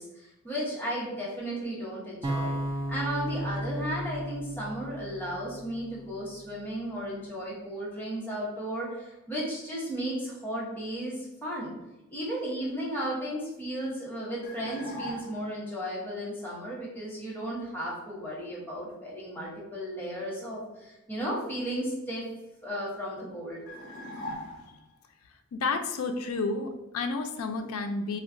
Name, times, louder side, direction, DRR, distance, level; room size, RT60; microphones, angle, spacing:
voice 1, 0.0-2.6 2.9-11.7 12.1-22.2 22.6-23.6, equal, 10° left, -6 dB, 0.8 m, -34 dB
sound 1, 2.2-6.4, right 1 dB, 20° right, 0.3 m, -34 dB
sound 2, 14.4-15.6 23.7-25.0, left 1 dB, 45° left, 0.9 m, -40 dB
voice 2, 25.5-28.2, left 3 dB, 80° left, 6 dB, 0.3 m, -31 dB
2.3 x 2.2 x 3.6 m, 0.97 s
head